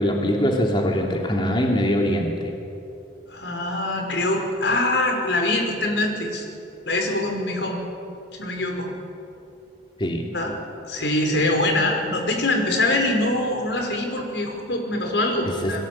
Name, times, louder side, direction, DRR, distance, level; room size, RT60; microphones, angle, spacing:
voice 1, 0.0-2.5 10.0-10.3 15.4-15.8, equal, 30° left, 1 dB, 2.7 m, -23 dB
voice 2, 3.3-6.5 6.9-7.8 8.3-8.9 10.3-10.5 10.8-15.8, left 2 dB, 80° left, 3 dB, 5.5 m, -23 dB
29.5 x 22.0 x 8.7 m, 2.8 s
head